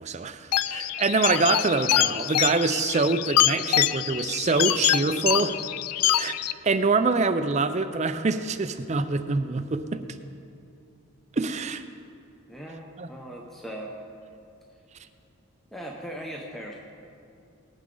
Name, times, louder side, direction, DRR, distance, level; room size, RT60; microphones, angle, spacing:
voice 1, 0.0-5.6 6.1-6.4 6.6-10.0 11.3-11.8 13.0-13.1, right 3 dB, 30° right, 10 dB, 0.5 m, -25 dB
sound 1, 0.5-6.5, left 12 dB, 90° left, 0.4 m, -25 dB
voice 2, 12.5-13.9 15.7-16.8, right 1 dB, ahead, -1 dB, 0.8 m, -39 dB
19.0 x 9.4 x 3.9 m, 2.6 s
head